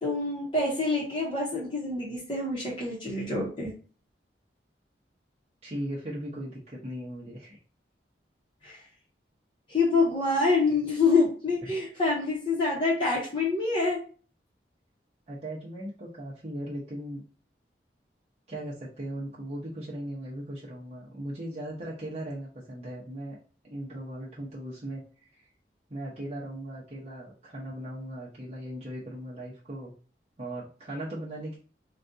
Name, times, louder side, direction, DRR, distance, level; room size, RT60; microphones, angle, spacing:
voice 1, 0.0-3.7 8.6-8.8 9.7-14.0, left 3 dB, 30° left, -4 dB, 0.9 m, -26 dB
voice 2, 5.6-7.6 11.6-11.7 15.3-17.2 18.5-23.4 23.6-25.0 25.3-25.5 25.9-29.9 30.4-31.6, right 1 dB, 40° right, -7 dB, 0.8 m, -38 dB
4.1 x 2.3 x 2.6 m, 0.39 s
head